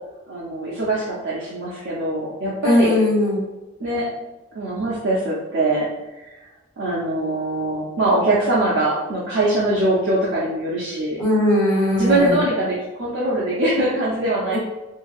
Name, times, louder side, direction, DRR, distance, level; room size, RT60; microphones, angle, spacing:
voice 1, 0.3-3.0 3.8-4.1 4.5-5.9 6.3-6.4 6.8-11.2 12.0-14.6, right 1 dB, 60° right, -7 dB, 0.5 m, -22 dB
voice 2, 2.6-3.4 11.2-12.4 14.5-14.6, left 1 dB, 30° left, -9 dB, 1.5 m, -19 dB
2.8 x 2.6 x 2.4 m, 1.1 s
head